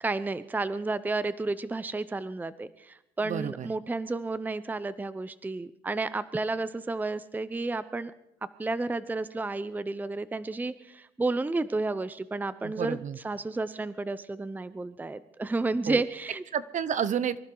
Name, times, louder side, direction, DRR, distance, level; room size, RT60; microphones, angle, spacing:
voice 1, 0.0-8.1 8.6-16.4, right 3 dB, 10° right, 15 dB, 0.6 m, -31 dB
voice 2, 3.2-3.7 12.6-13.2 15.9-16.0 16.5-17.4, right 8 dB, 45° right, 16 dB, 0.8 m, -30 dB
24.0 x 14.5 x 3.9 m, 0.85 s
cardioid pair, 110°, 17 cm